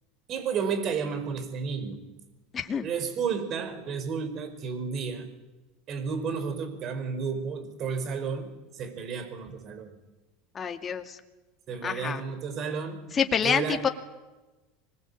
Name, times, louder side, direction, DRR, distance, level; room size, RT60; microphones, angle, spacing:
voice 1, 0.3-2.1 2.8-5.3 5.9-10.0 11.7-13.8, right 6 dB, 45° right, 10 dB, 5.1 m, -32 dB
voice 2, 2.5-2.9 10.5-11.2 11.8-12.2 13.1-13.9, left 7 dB, 30° left, 6 dB, 2.4 m, -27 dB
25.5 x 21.0 x 8.7 m, 1.1 s
hypercardioid pair, 90°, 0 cm